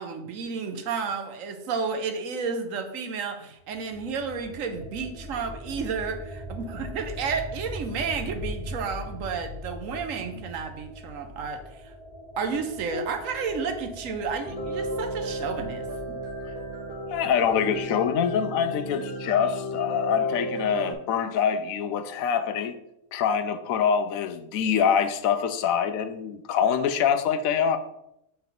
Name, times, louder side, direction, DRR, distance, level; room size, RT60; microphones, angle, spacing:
voice 1, 0.0-11.9 12.4-16.2, right 5 dB, 75° right, 6 dB, 1.2 m, -32 dB
sound 1, 3.6-18.4, left 1 dB, 30° right, 1.1 m, -40 dB
sound 2, 14.4-20.9, right 1 dB, 5° right, 1.3 m, -34 dB
voice 2, 17.1-22.7 23.1-27.8, left 7 dB, 90° left, 10 dB, 1.0 m, -25 dB
7.0 x 4.2 x 3.9 m, 0.82 s
omnidirectional pair, 1.4 m